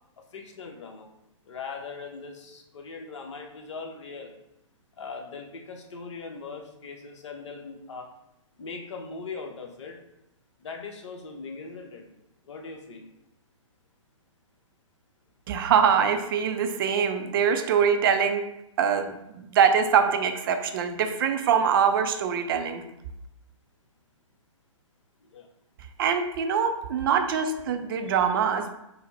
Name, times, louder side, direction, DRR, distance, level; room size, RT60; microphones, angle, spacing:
voice 1, 0.3-1.1 1.5-4.3 5.0-8.1 8.6-10.0 10.6-12.0 12.5-13.1 25.3-25.5 28.0-28.2, left 4 dB, 60° left, 2 dB, 0.9 m, -40 dB
voice 2, 15.5-18.4 18.8-22.8 26.0-28.7, right 7 dB, 45° right, 7 dB, 0.4 m, -23 dB
4.2 x 2.1 x 4.0 m, 0.84 s
hypercardioid pair, 130°, 17 cm